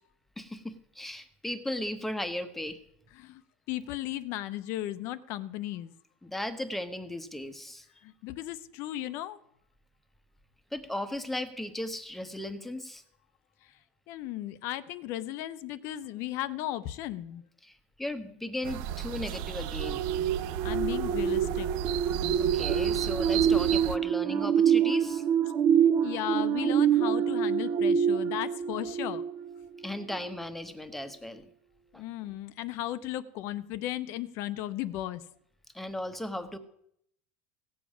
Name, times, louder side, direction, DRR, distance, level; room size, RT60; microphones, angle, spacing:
voice 1, 0.4-2.8 6.2-7.9 10.7-13.0 17.6-20.0 22.3-25.2 29.8-31.5 31.9-32.0 35.7-36.6, left 1 dB, 5° left, 10 dB, 1.0 m, -36 dB
voice 2, 3.7-5.9 8.0-9.4 13.6-13.7 14.1-17.4 20.6-21.7 26.0-29.2 32.0-35.2, left 14 dB, 55° left, 14 dB, 0.7 m, -35 dB
sound 1, 18.6-24.0, right 11 dB, 60° right, 0.5 m, -34 dB
sound 2, 19.8-29.7 30.1-30.3, right 8 dB, 40° right, 0.8 m, -26 dB
17.0 x 7.2 x 6.2 m, 0.72 s
supercardioid pair, 140°, 5 cm